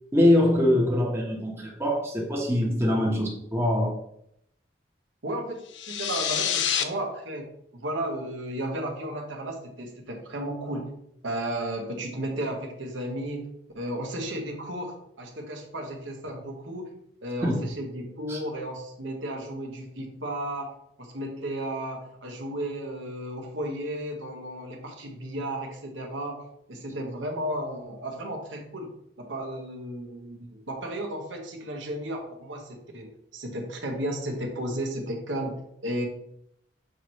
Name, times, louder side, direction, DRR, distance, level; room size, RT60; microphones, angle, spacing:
voice 1, 0.1-4.0 17.4-17.6 18.3-18.4, left 1 dB, 15° right, -2 dB, 1.1 m, -23 dB
voice 2, 5.2-10.9 11.2-13.5 13.7-16.9 17.2-26.4 26.7-36.1, right 1 dB, 85° right, 1 dB, 1.1 m, -34 dB
sound 1, 5.7-6.8, left 8 dB, 75° left, 0.5 m, -27 dB
6.7 x 4.5 x 3.2 m, 0.75 s
head